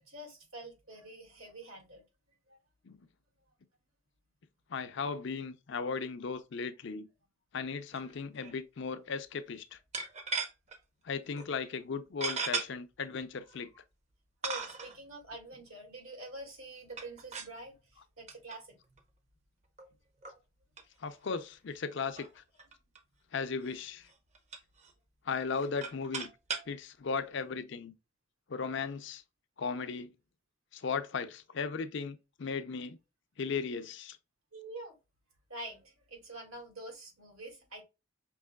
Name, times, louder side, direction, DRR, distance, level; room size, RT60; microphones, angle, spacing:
voice 1, 0.0-2.0 2.5-2.6 9.9-10.0 14.4-17.8 18.2-18.8 34.5-34.9 35.5-37.8, right 1 dB, 85° right, 2.0 m, -46 dB
voice 2, 4.7-7.1 7.5-9.8 11.0-13.7 21.0-22.4 23.3-24.1 25.2-26.3 26.7-27.9 28.5-29.2 29.6-30.1 30.7-33.0 33.4-34.2, left 5 dB, 60° left, 0.5 m, -36 dB
sound 1, 7.9-8.1 8.4-8.5 9.9-10.8 11.3-11.5 12.2-12.7 13.5-13.6 14.4-15.0 16.9-17.6 18.3-18.6 19.0-19.1 19.8-19.9 20.2-20.4 20.8-20.9 21.1-21.2 21.5-21.6 22.0-23.0 23.6-23.8 24.1-24.9 25.5-26.7, right 4 dB, 35° right, 0.7 m, -37 dB
5.4 x 2.9 x 2.2 m
head